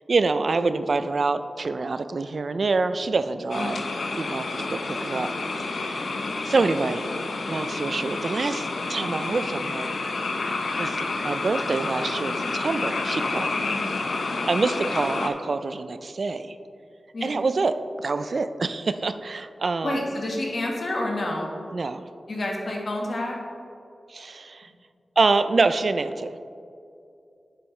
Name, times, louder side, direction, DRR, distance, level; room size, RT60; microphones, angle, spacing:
voice 1, 0.1-3.8 4.1-6.0 6.5-7.0 7.5-10.0 10.8-13.7 14.5-16.6 17.2-20.0 21.7-22.1 24.1-24.7 25.2-26.4, right 3 dB, 55° right, 11 dB, 0.3 m, -26 dB
sound 1, 3.5-15.3, left 3 dB, 75° left, 0.6 m, -29 dB
voice 2, 3.5-3.8 6.1-6.4 13.6-13.9 17.1-17.3 19.8-21.5 22.3-23.4, left 1 dB, 55° left, -1 dB, 1.5 m, -30 dB
9.9 x 7.6 x 3.2 m, 2.6 s
wide cardioid pair, 120°, 0 cm